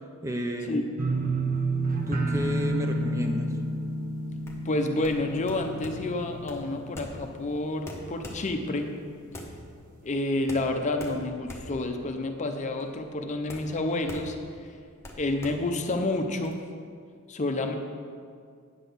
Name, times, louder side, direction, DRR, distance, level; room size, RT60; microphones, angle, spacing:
voice 1, 0.2-0.8 2.1-3.6, equal, 15° right, 4 dB, 0.4 m, -31 dB
sound 1, 1.0-7.8 8.1-8.7 9.1-9.2, right 2 dB, 40° right, 0.7 m, -30 dB
sound 2, 4.3-16.5, left 1 dB, 10° left, 0.9 m, -44 dB
voice 2, 4.6-8.9 10.0-14.4 15.2-16.6 17.3-17.7, left 2 dB, 35° left, 5 dB, 0.6 m, -29 dB
9.2 x 4.0 x 6.8 m, 2.1 s
head